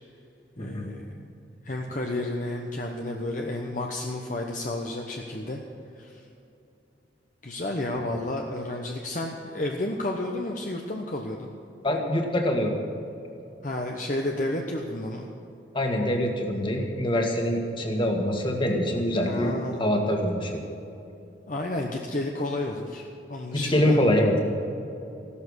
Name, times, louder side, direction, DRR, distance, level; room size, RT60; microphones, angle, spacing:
voice 1, 0.6-1.3 1.6-5.6 5.9-6.2 7.4-11.5 13.6-15.3 19.1-19.9 21.5-24.0, left 1 dB, 45° left, 1 dB, 1.0 m, -31 dB
voice 2, 11.8-12.8 15.7-19.5 19.8-20.6 23.5-24.3, left 1 dB, 25° left, 2 dB, 1.9 m, -24 dB
16.0 x 12.5 x 6.4 m, 2.7 s
head